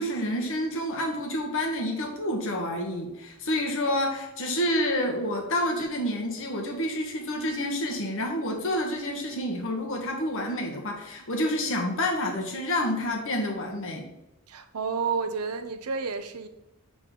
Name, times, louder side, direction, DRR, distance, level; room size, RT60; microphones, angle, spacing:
voice 1, 0.0-14.0, left 1 dB, 60° left, 1.2 m, -28 dB
voice 2, 14.5-16.5, right 5 dB, 85° right, 0.6 m, -30 dB
6.6 x 3.8 x 3.8 m
head